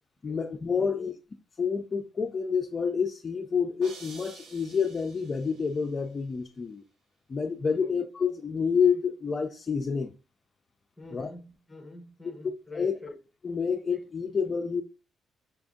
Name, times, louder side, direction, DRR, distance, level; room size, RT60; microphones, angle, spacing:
voice 1, 0.2-1.1 1.6-6.8 7.3-10.1 11.1-11.3 12.2-12.3 12.7-12.9 13.4-14.8, left 6 dB, 25° left, 0.4 m, -28 dB
voice 2, 0.8-1.1 7.8-8.0 11.0-13.2, left 3 dB, 5° left, 0.9 m, -45 dB
sound 1, 3.8-5.9, right 3 dB, 70° right, 1.3 m, -50 dB
5.7 x 2.6 x 3.5 m
cardioid pair, 165°, 0 cm